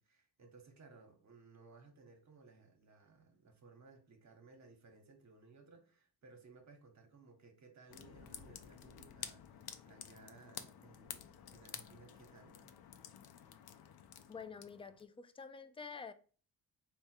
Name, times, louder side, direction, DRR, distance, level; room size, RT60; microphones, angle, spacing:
voice 1, 0.0-12.7, right 4 dB, 45° right, 1.1 m, -60 dB
sound 1, 7.9-15.0, left 9 dB, 70° left, 0.6 m, -51 dB
voice 2, 14.3-16.1, left 5 dB, 15° left, 0.3 m, -48 dB
3.5 x 2.2 x 4.2 m
cardioid pair, 90°, 39 cm